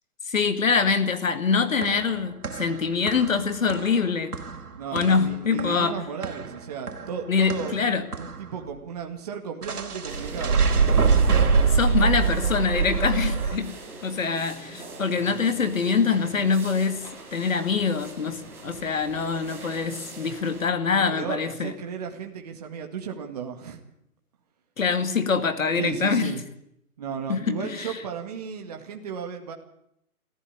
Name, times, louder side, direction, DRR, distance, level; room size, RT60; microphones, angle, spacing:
voice 1, 0.3-4.3 4.9-6.0 7.3-8.0 11.7-13.7 14.0-17.0 17.3-21.7 24.8-26.3 27.3-28.0, left 5 dB, 60° left, 10 dB, 2.3 m, -24 dB
sound 1, 1.6-8.6 9.6-13.6, right 5 dB, 80° right, 3.6 m, -25 dB
voice 2, 4.8-7.8 8.2-10.6 20.9-23.8 25.8-26.4 27.0-29.5, right 7 dB, 25° right, 3 dB, 2.0 m, -34 dB
sound 2, 10.1-20.7, right 3 dB, 5° right, 2.3 m, -42 dB
23.5 x 14.5 x 9.8 m, 0.76 s
hypercardioid pair, 170°, 45 cm